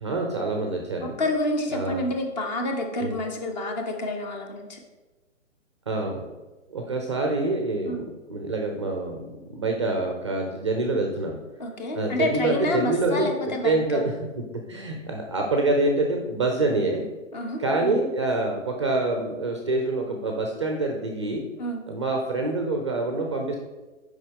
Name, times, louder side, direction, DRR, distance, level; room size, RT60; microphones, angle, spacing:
voice 1, 0.0-1.2 1.7-2.1 3.0-3.1 5.9-6.3 6.7-8.0 8.3-11.4 11.9-14.4 14.7-17.1 17.6-21.4 21.9-23.6, right 2 dB, 25° right, 2 dB, 0.4 m, -26 dB
voice 2, 1.0-4.8 7.8-8.0 11.6-14.0 17.3-18.0 21.6-21.8, left 1 dB, 35° left, 3 dB, 1.0 m, -29 dB
6.5 x 5.1 x 3.6 m, 1.2 s
figure-of-eight pair, 130°, 39 cm